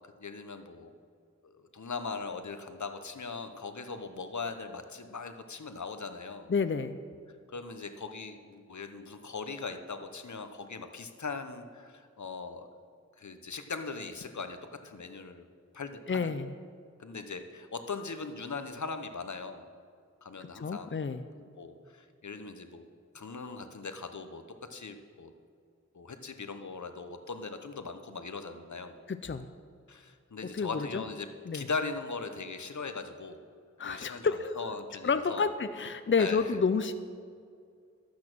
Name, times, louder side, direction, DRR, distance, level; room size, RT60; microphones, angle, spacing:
voice 1, 0.2-0.9 1.4-6.5 7.5-12.7 13.2-14.6 14.8-15.5 15.7-16.3 17.0-19.7 20.2-21.0 21.4-22.9 23.1-24.4 24.7-25.3 25.9-29.0 29.9-31.3 31.5-33.4 33.8-35.5 36.2-36.5, left 4 dB, 70° left, 8 dB, 1.0 m, -40 dB
voice 2, 6.5-7.0 16.1-16.5 20.4-21.2 29.1-29.5 30.5-31.0 31.5-31.7 33.8-34.6 35.0-36.9, left 5 dB, 40° left, 10 dB, 0.6 m, -30 dB
13.0 x 8.5 x 6.2 m, 2.2 s
wide cardioid pair, 45°, 30 cm